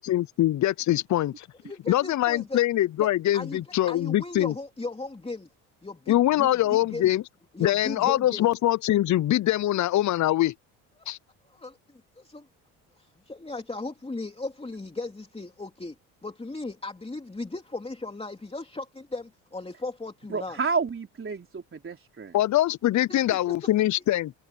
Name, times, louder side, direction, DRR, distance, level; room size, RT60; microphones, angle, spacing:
voice 1, 0.0-1.5 1.9-4.5 6.1-7.2 7.6-10.5 11.1-11.2 22.3-24.3, left 14 dB, 45° left, 0.7 m, -23 dB
voice 2, 1.7-2.6 3.0-3.1 3.3-5.5 5.8-7.1 7.5-8.5 11.0-11.1 11.5-12.5 13.0-20.6 23.1-23.7, left 3 dB, 15° left, 2.9 m, -37 dB
voice 3, 20.3-22.4, right 5 dB, 30° right, 4.0 m, -30 dB
supercardioid pair, 70°, 41 cm